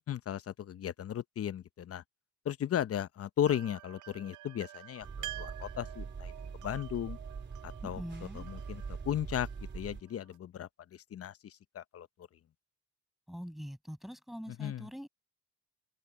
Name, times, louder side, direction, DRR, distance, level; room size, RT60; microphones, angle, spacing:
voice 1, 0.1-2.0 2.4-6.3 6.6-7.2 7.6-8.0 8.3-9.5 9.7-12.1 14.5-14.9, left 10 dB, 50° left, 0.8 m, -36 dB
sound 1, 3.4-10.4, right 15 dB, 75° right, 0.7 m, -49 dB
sound 2, 5.0-10.0, right 5 dB, 35° right, 3.7 m, -43 dB
voice 2, 7.8-8.4 13.3-15.1, equal, ahead, 7.0 m, -43 dB
cardioid pair, 90°, 30 cm